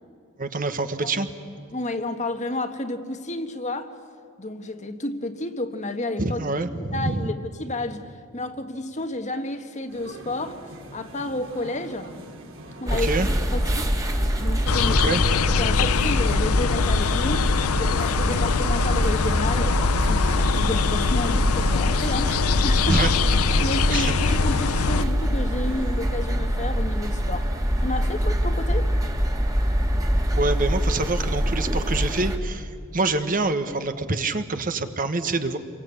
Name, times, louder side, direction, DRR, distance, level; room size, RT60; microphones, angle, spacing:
voice 1, 0.4-1.3 6.2-7.3 12.9-13.3 14.9-15.2 22.9-23.1 23.9-24.1 30.3-35.6, right 3 dB, 40° right, 1.2 m, -26 dB
voice 2, 1.7-3.9 4.4-6.4 6.9-10.6 10.9-12.2 12.8-13.9 14.4-15.0 15.6-17.5 17.8-23.1 23.4-27.5 27.8-28.9, left 2 dB, 35° left, 1.4 m, -31 dB
sound 1, 9.9-26.1, right 1 dB, 60° right, 4.2 m, -42 dB
sound 2, 12.9-32.4, equal, 15° right, 1.9 m, -24 dB
sound 3, 14.7-25.0, left 5 dB, 85° left, 0.7 m, -23 dB
28.5 x 23.0 x 8.5 m
head